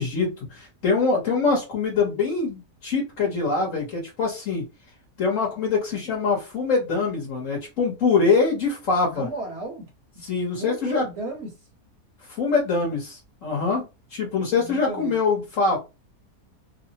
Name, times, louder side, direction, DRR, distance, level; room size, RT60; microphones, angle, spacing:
voice 1, 0.0-4.6 5.2-9.3 10.2-11.0 12.3-13.8 14.1-15.8, left 4 dB, 55° left, 1.2 m, -24 dB
voice 2, 9.0-9.9 10.6-11.5 14.5-15.2, right 2 dB, 50° right, 1.1 m, -34 dB
3.1 x 2.0 x 2.7 m
omnidirectional pair, 1.7 m